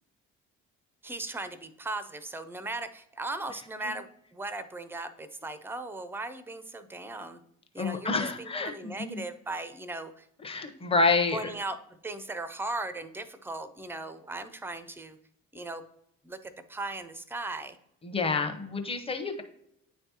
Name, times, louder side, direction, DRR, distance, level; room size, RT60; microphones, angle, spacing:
voice 1, 1.0-7.4 7.7-10.3 11.3-15.2 15.5-15.8 16.2-17.8, right 2 dB, 5° right, 12 dB, 0.5 m, -38 dB
voice 2, 7.8-9.2 10.4-11.5 18.0-19.4, left 3 dB, 15° left, 5 dB, 0.8 m, -28 dB
9.9 x 3.3 x 2.8 m, 0.75 s
figure-of-eight pair, 45°, 40 cm